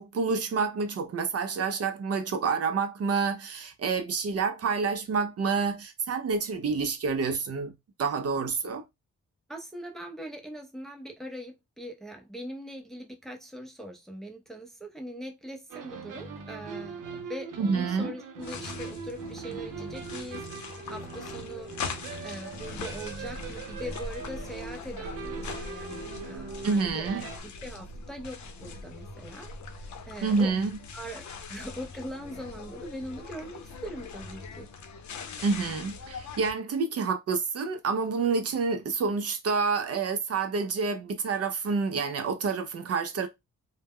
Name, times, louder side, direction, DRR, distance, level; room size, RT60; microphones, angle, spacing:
voice 1, 0.0-7.7 8.0-8.8 17.6-18.1 26.6-27.2 30.2-30.8 35.4-43.3, right 5 dB, 50° right, 0.5 m, -28 dB
voice 2, 9.5-27.1 27.6-30.5 30.9-34.7, equal, ahead, 0.5 m, -41 dB
sound 1, 15.7-27.4, right 5 dB, 90° right, 0.6 m, -41 dB
sound 2, 18.4-36.5, left 4 dB, 65° left, 0.6 m, -41 dB
2.1 x 2.0 x 3.5 m
cardioid pair, 100°, 31 cm